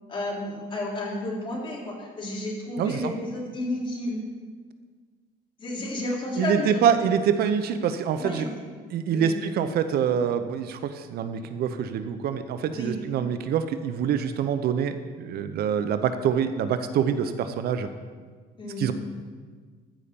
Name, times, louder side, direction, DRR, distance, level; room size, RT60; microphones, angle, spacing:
voice 1, 0.1-4.2 5.6-6.8 8.2-8.5 9.1-9.3 12.7-13.0 18.6-18.8, left 1 dB, 30° left, -3 dB, 3.7 m, -31 dB
voice 2, 2.8-3.1 6.4-8.5 8.9-17.9 18.8-18.9, right 8 dB, 65° right, 10 dB, 0.7 m, -25 dB
14.0 x 5.6 x 6.9 m, 1.5 s
cardioid pair, 110°, 17 cm